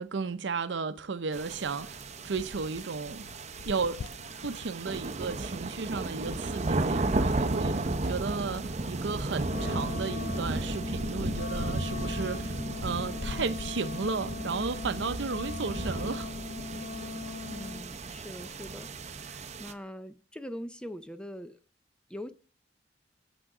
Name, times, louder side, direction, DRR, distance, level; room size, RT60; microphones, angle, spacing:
voice 1, 0.0-2.0 2.2-3.2 3.7-4.0 4.4-16.3, right 4 dB, 80° right, 0.6 m, -34 dB
sound 1, 1.3-19.7, right 2 dB, 40° right, 0.7 m, -34 dB
sound 2, 1.5-13.7, left 5 dB, 70° left, 0.4 m, -46 dB
Wind instrument woodwind instrument, 9.4-17.9, left 4 dB, 50° left, 1.1 m, -39 dB
voice 2, 17.5-21.6 22.1-22.3, equal, 5° left, 0.5 m, -42 dB
7.8 x 6.2 x 6.0 m
head